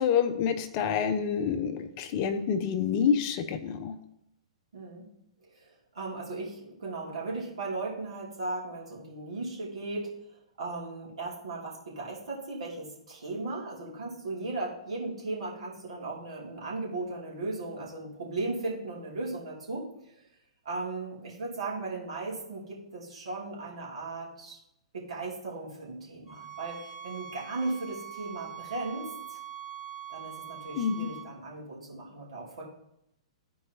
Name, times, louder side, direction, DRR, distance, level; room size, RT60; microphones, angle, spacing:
voice 1, 0.0-4.0 30.7-31.1, left 7 dB, 40° left, 8 dB, 0.7 m, -27 dB
voice 2, 4.7-5.1 5.4-10.1 10.6-19.9 20.6-24.6 24.9-29.4 30.1-32.6, right 2 dB, 70° right, -5 dB, 2.8 m, -37 dB
sound 1, 26.3-31.3, right 10 dB, 10° right, 1.5 m, -43 dB
13.0 x 4.6 x 3.0 m, 0.80 s
figure-of-eight pair, 115°, 3 cm